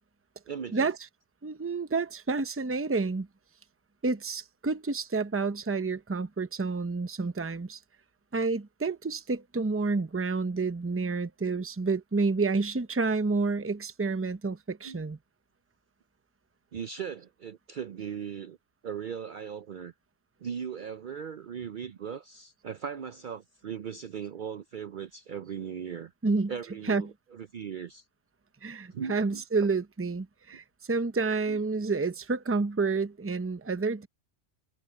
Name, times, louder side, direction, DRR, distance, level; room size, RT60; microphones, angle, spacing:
voice 1, 0.5-0.9 14.8-15.0 16.7-18.6 18.8-19.9 20.4-26.1 26.5-28.0 28.9-29.4 31.5-31.6, right 7 dB, 55° right, 0.6 m, -38 dB
voice 2, 1.4-3.3 4.0-7.8 8.3-15.2 26.2-26.5 26.9-27.1 28.6-34.1, right 4 dB, 15° right, 0.6 m, -29 dB
omnidirectional pair, 1.2 m